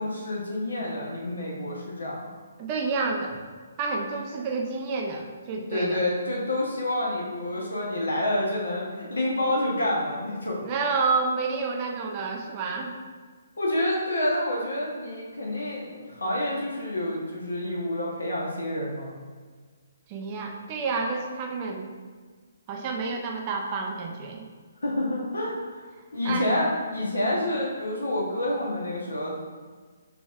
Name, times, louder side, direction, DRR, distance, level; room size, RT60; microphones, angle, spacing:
voice 1, 0.0-2.3 5.7-10.6 13.6-19.1 24.8-25.8 26.1-29.3, left 1 dB, 75° left, -3 dB, 0.9 m, -28 dB
voice 2, 2.6-3.4 3.8-6.0 10.6-12.9 20.1-21.9 22.7-24.4 26.2-26.5, right 4 dB, 30° right, 1 dB, 0.6 m, -29 dB
6.2 x 3.0 x 2.4 m, 1.5 s
figure-of-eight pair, 135°, 0 cm